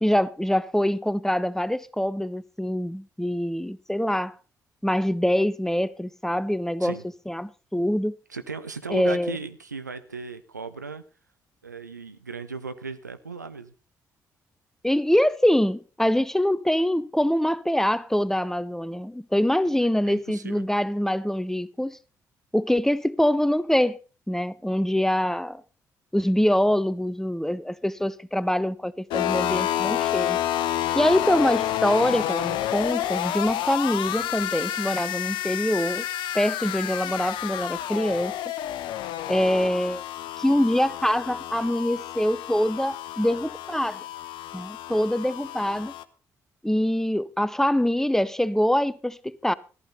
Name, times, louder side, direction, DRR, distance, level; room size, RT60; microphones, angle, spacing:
voice 1, 0.0-4.4 4.8-7.0 7.3-8.2 8.9-9.3 14.8-22.0 22.5-24.0 24.3-25.6 26.1-30.4 30.9-36.0 36.3-38.3 39.3-40.0 40.4-44.0 44.5-45.9 46.6-49.5, left 1 dB, 5° left, 0.7 m, -24 dB
voice 2, 8.3-11.0 11.6-13.7 19.6-20.7, right 4 dB, 85° right, 0.6 m, -37 dB
sound 1, 29.1-46.0, left 12 dB, 60° left, 0.8 m, -29 dB
14.5 x 12.0 x 4.1 m
figure-of-eight pair, 40°, 9 cm